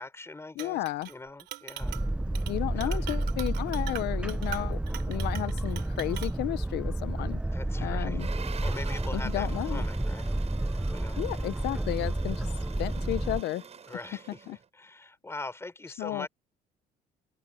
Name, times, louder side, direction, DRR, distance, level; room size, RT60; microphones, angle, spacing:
voice 1, 0.0-2.0 2.7-3.0 7.5-8.2 8.6-10.3 10.9-11.2 13.9-16.3, left 2 dB, 15° left, 6.2 m, -42 dB
voice 2, 0.6-1.1 2.5-4.8 5.1-7.4 7.8-8.3 9.1-9.8 11.2-12.5 12.8-13.6 14.5-14.6 16.0-16.3, left 16 dB, 80° left, 0.8 m, -33 dB
Chink clink, 0.6-1.1 1.4-2.1 2.3-2.5 2.8-6.3, right 14 dB, 80° right, 3.4 m, -42 dB
Boat Water vehicle, 1.8-13.4, right 1 dB, 5° right, 0.6 m, -31 dB
sound 1, 8.2-14.6, right 7 dB, 40° right, 7.5 m, -46 dB
open air
cardioid pair, 110°, 17 cm